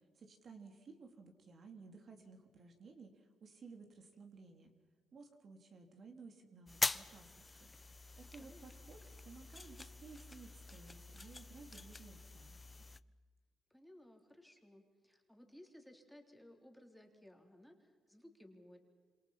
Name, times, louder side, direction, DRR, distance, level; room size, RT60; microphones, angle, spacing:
voice 1, 0.2-4.7 5.1-7.7 8.2-9.0 9.2-12.6, right 4 dB, 50° right, 4 dB, 3.5 m, -56 dB
sound 1, 6.7-13.0, left 3 dB, 20° left, 0.7 m, -44 dB
voice 2, 8.2-8.9 13.7-18.8, left 1 dB, ahead, 2 dB, 3.6 m, -60 dB
27.0 x 27.0 x 5.8 m, 1.5 s
cardioid pair, 90°, 0 cm